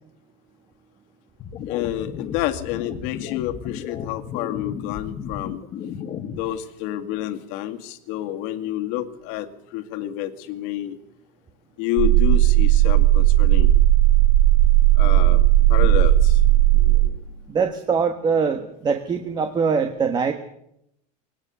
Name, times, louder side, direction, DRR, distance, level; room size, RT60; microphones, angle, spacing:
sound 1, 1.4-6.4, left 8 dB, 30° left, 1.6 m, -34 dB
voice 1, 1.7-5.6 6.3-11.0 11.8-13.7 15.0-17.2, left 12 dB, 55° left, 7 dB, 2.2 m, -29 dB
sound 2, 12.0-17.1, right 14 dB, 55° right, 3.1 m, -15 dB
voice 2, 17.5-20.3, right 5 dB, 20° right, 8 dB, 1.3 m, -22 dB
21.5 x 18.5 x 7.0 m, 0.77 s
supercardioid pair, 150°, 21 cm